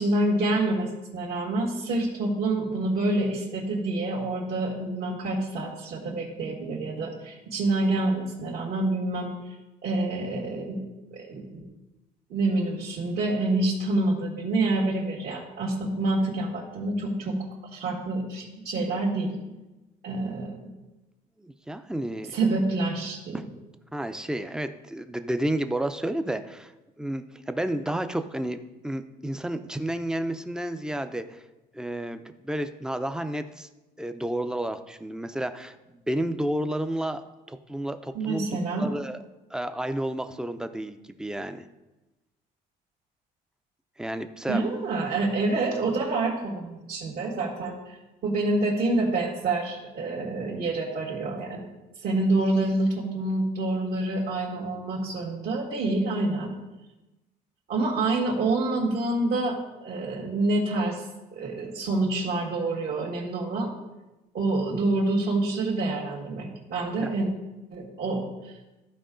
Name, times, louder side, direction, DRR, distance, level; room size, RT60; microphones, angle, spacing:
voice 1, 0.0-9.3 9.8-10.8 11.1-11.6 12.3-17.4 17.7-19.6 20.0-20.7 22.3-23.4 38.1-38.9 44.5-48.0 48.2-51.7 52.0-56.5 57.7-61.1 61.3-63.7 64.3-67.3 67.7-68.5, right 2 dB, 65° right, -6 dB, 1.8 m, -27 dB
voice 2, 21.4-22.4 23.3-23.5 23.9-26.7 27.0-31.4 31.7-33.7 34.0-37.2 37.5-38.5 38.8-39.2 39.5-41.7 44.0-44.6 67.0-67.1, right 1 dB, 5° right, 9 dB, 0.5 m, -31 dB
13.5 x 4.6 x 3.8 m, 1.1 s
cardioid pair, 110°, 17 cm